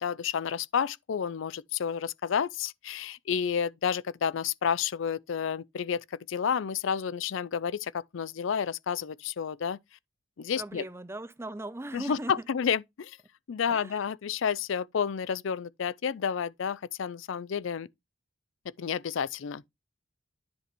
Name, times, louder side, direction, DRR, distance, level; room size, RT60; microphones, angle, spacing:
voice 1, 0.0-9.8 10.4-10.8 11.9-13.2 13.5-17.9 18.8-19.7, left 7 dB, 65° left, 0.4 m, -30 dB
voice 2, 10.6-12.3 13.7-14.0, right 1 dB, 10° right, 0.4 m, -38 dB
10.0 x 5.1 x 3.0 m
head